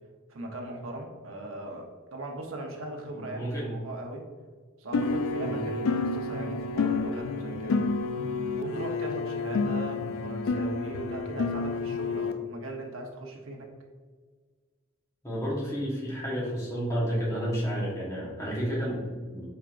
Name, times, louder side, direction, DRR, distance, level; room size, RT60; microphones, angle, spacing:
voice 1, 0.3-4.3 4.8-7.9 8.6-13.7, right 2 dB, 70° right, 1 dB, 0.8 m, -39 dB
voice 2, 3.1-3.7 5.4-5.6 15.2-19.4, equal, 15° left, -6 dB, 1.1 m, -31 dB
sound 1, 4.9-12.3, left 4 dB, 75° left, 0.3 m, -29 dB
4.7 x 4.3 x 2.5 m, 1.5 s
head